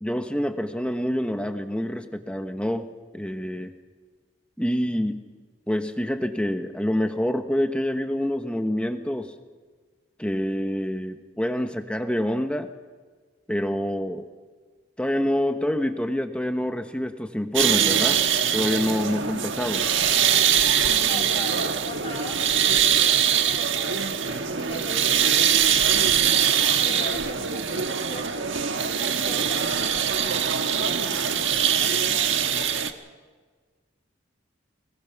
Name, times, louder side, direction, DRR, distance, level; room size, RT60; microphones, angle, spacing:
voice 1, 0.0-3.7 4.6-5.2 5.7-9.3 10.2-12.7 13.5-14.3 15.0-18.2 18.5-19.9, equal, 5° left, 7 dB, 1.2 m, -27 dB
sound 1, 17.5-32.9, right 8 dB, 85° right, 1.4 m, -22 dB
voice 2, 21.0-26.3 26.8-32.8, left 1 dB, 30° left, -3 dB, 3.7 m, -41 dB
25.5 x 19.5 x 5.9 m, 1.4 s
head